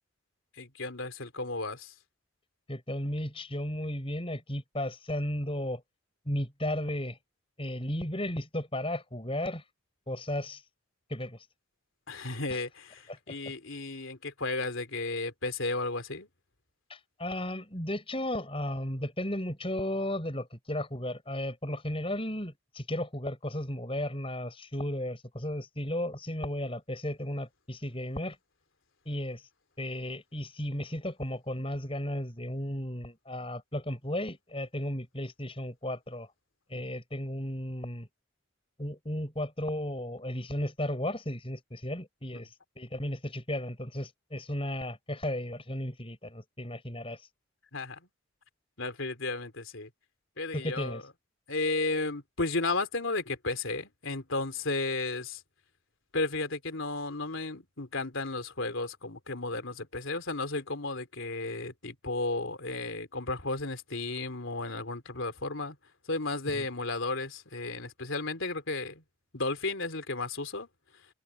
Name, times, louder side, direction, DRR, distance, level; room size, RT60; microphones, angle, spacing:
voice 1, 0.6-1.9 12.1-16.3 36.7-36.9 42.3-42.5 47.7-48.0 48.8-49.9 50.4-51.0 51.5-55.4 56.1-65.8 66.1-69.0 69.3-70.7, left 3 dB, 70° left, 3.2 m, -33 dB
voice 2, 2.7-5.8 6.3-7.2 7.6-9.6 10.1-10.6 11.1-11.4 12.5-12.6 13.3-13.4 16.9-28.4 29.1-29.4 29.8-36.3 36.7-38.1 38.8-42.5 42.8-47.2 50.5-51.0 66.5-66.6, left 1 dB, 25° left, 7.8 m, -34 dB
head